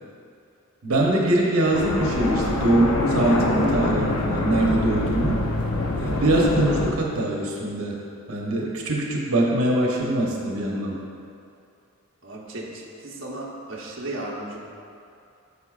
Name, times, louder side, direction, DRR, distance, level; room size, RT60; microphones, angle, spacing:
voice 1, 0.8-5.4 6.0-8.0 8.3-11.0, right 1 dB, 90° right, -2 dB, 0.9 m, -23 dB
sound 1, 1.7-6.9, left 2 dB, 90° left, 0.7 m, -25 dB
voice 2, 12.2-14.6, right 1 dB, 60° right, -4 dB, 1.0 m, -35 dB
9.5 x 6.7 x 2.4 m, 2.6 s
head